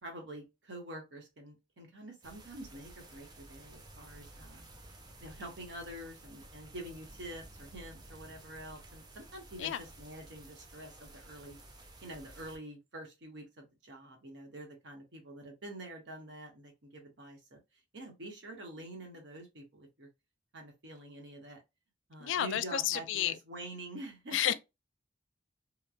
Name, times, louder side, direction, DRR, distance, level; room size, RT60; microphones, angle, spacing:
voice 1, 0.0-4.6 5.2-11.6 12.0-17.6 17.9-20.1 20.5-21.6 22.1-24.5, right 1 dB, 70° right, 1.0 m, -47 dB
sound 1, 2.2-12.6, right 2 dB, 20° right, 0.5 m, -53 dB
voice 2, 22.2-23.4 24.3-24.5, left 11 dB, 85° left, 0.3 m, -31 dB
3.0 x 2.1 x 2.4 m
head